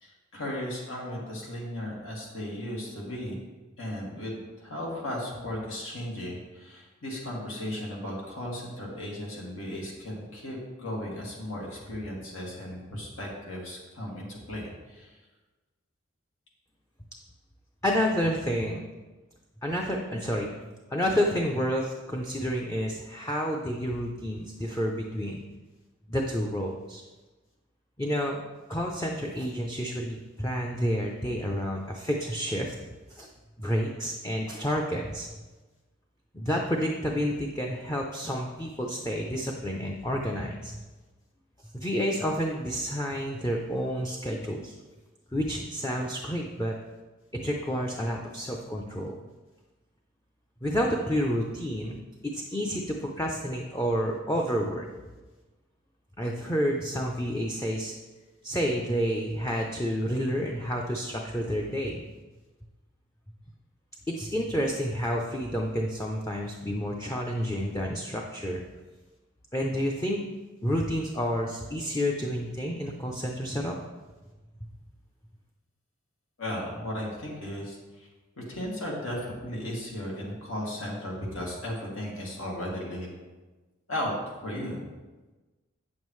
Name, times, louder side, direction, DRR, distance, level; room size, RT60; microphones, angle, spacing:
voice 1, 0.0-3.4 3.8-15.1 76.4-78.1 78.4-83.1 83.9-84.1 84.4-84.8, left 1 dB, 85° left, -3 dB, 2.3 m, -36 dB
voice 2, 17.8-18.8 19.6-20.5 20.9-25.4 26.1-27.0 28.0-28.4 28.7-32.7 33.1-33.3 33.6-35.3 36.3-40.8 41.7-44.7 45.3-46.8 47.4-49.1 50.6-54.9 56.2-57.9 58.4-62.0 64.1-68.6 69.5-70.2 70.6-73.8, equal, 15° left, 0 dB, 0.5 m, -29 dB
8.8 x 7.2 x 3.1 m, 1.2 s
head